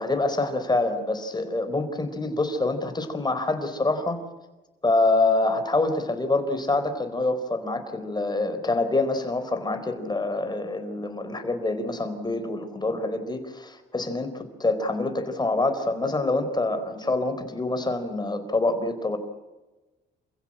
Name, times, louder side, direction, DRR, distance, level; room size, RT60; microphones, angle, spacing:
voice 1, 0.0-4.2 4.8-19.2, left 2 dB, 20° left, 9 dB, 4.3 m, -26 dB
28.0 x 16.0 x 8.9 m, 1.1 s
cardioid pair, 90°, 20 cm